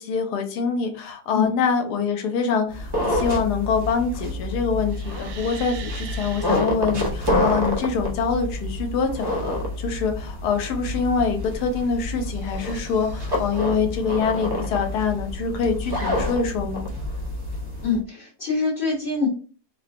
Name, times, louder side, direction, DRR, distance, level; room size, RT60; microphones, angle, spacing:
voice 1, 0.0-16.8, left 5 dB, 80° left, 5 dB, 1.2 m, -25 dB
sound 1, 2.7-18.0, left 1 dB, 40° right, 0.3 m, -28 dB
sound 2, 4.9-6.8 11.6-13.6, right 6 dB, 90° right, 1.2 m, -42 dB
voice 2, 17.8-19.3, left 4 dB, 50° left, -3 dB, 0.7 m, -24 dB
3.9 x 2.1 x 2.5 m, 0.39 s
omnidirectional pair, 1.7 m